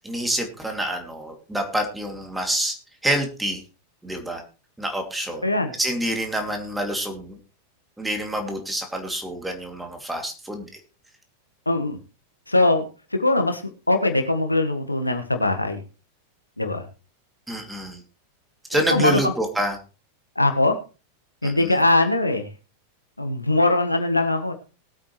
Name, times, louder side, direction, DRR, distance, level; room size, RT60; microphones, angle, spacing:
voice 1, 0.0-2.8 3.0-3.6 4.0-4.4 4.8-5.4 5.8-7.4 8.0-10.8 17.5-18.0 18.7-19.8 21.4-21.7, right 1 dB, 5° right, 4 dB, 2.7 m, -27 dB
voice 2, 11.6-12.0 12.5-12.9 13.1-13.6 13.9-15.8 16.6-16.8 18.9-19.3 20.3-20.8 21.4-22.5 23.2-24.5, left 2 dB, 85° left, 6 dB, 1.5 m, -21 dB
20.0 x 8.7 x 3.2 m, 0.33 s
figure-of-eight pair, 90°, 0 cm